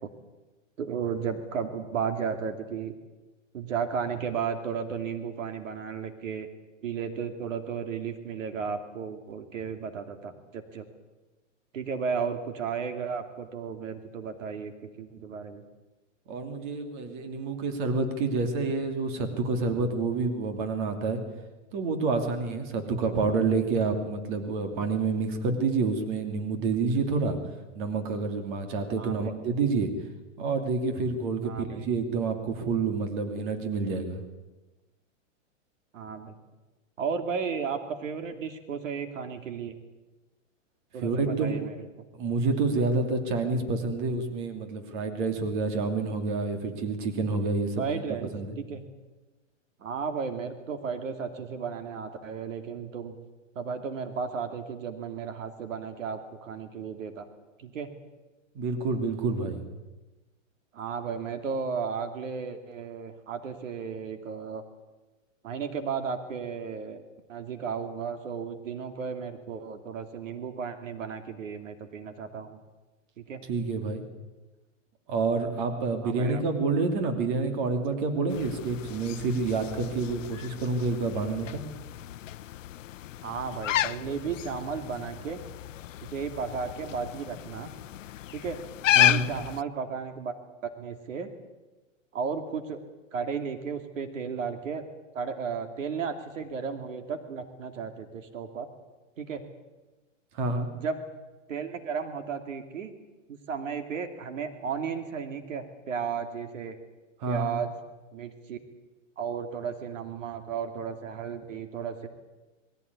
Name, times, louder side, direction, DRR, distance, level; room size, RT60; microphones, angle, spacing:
voice 1, 0.8-2.9 3.5-6.5 6.8-10.8 11.7-15.6 22.9-23.3 29.0-29.3 31.4-31.9 35.9-36.3 37.0-39.8 40.9-41.8 47.8-48.3 48.6-48.8 49.8-53.1 53.5-57.3 57.6-57.9 60.7-64.6 65.4-67.0 67.3-72.6 73.2-73.4 76.0-76.4 83.2-85.4 86.1-87.7 88.3-88.6 88.9-90.3 90.6-91.3 92.1-92.8 93.1-94.8 95.1-98.7 99.2-99.4 100.7-101.0 101.5-102.9 103.3-106.8 107.3-107.7 108.1-108.6 109.2-112.1, right 6 dB, 80° right, 7 dB, 2.8 m, -34 dB
voice 2, 16.3-21.2 21.7-27.4 27.7-29.9 30.4-34.2 41.0-41.7 42.1-48.0 48.3-48.6 58.5-59.6 73.5-74.0 75.1-81.6 89.0-89.3 100.3-100.7 107.2-107.5, right 4 dB, 40° right, 6 dB, 2.9 m, -28 dB
sound 1, 78.3-89.6, left 13 dB, 75° left, 0.7 m, -32 dB
21.0 x 16.0 x 9.7 m, 1.2 s
hypercardioid pair, 160°, 38 cm